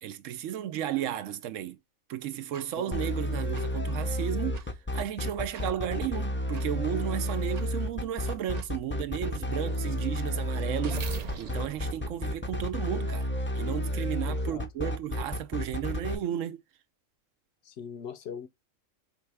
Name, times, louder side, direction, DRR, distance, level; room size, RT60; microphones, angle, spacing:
voice 1, 0.0-1.8 2.1-16.6, right 11 dB, 80° right, 1.0 m, -34 dB
sound 1, 2.5-2.7 3.5-3.6 4.5-4.7 5.5-5.7 6.5-6.7 7.5-7.7 8.5-8.7 9.2-13.1, right 6 dB, 55° right, 0.4 m, -44 dB
sound 2, 2.9-16.1, left 1 dB, 20° left, 0.3 m, -31 dB
voice 2, 14.3-14.9 17.6-18.5, left 7 dB, 65° left, 0.8 m, -41 dB
4.7 x 3.3 x 3.3 m
omnidirectional pair, 1.3 m